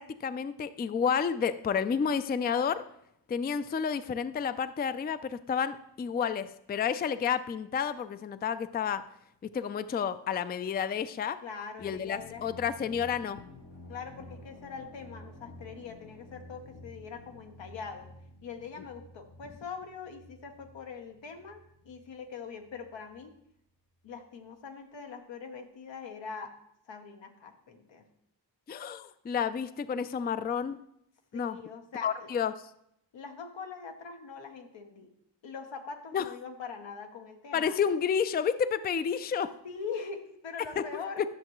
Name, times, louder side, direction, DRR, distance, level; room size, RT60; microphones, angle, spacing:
voice 1, 0.0-2.8 3.3-9.0 9.5-11.4 11.8-13.4 28.7-30.8 31.3-31.6 32.0-32.5 36.1-36.2 37.5-39.5 40.8-41.0, left 7 dB, 25° left, 13 dB, 0.3 m, -30 dB
voice 2, 11.4-12.5 13.9-18.1 18.4-23.4 24.0-26.5 26.9-28.0 31.3-32.3 33.1-35.1 35.4-37.8 39.6-41.2, left 5 dB, 85° left, 4 dB, 1.1 m, -42 dB
sound 1, 11.8-23.3, left 1 dB, 70° left, 3.3 m, -51 dB
11.5 x 6.4 x 3.1 m, 0.75 s
cardioid pair, 60°, 44 cm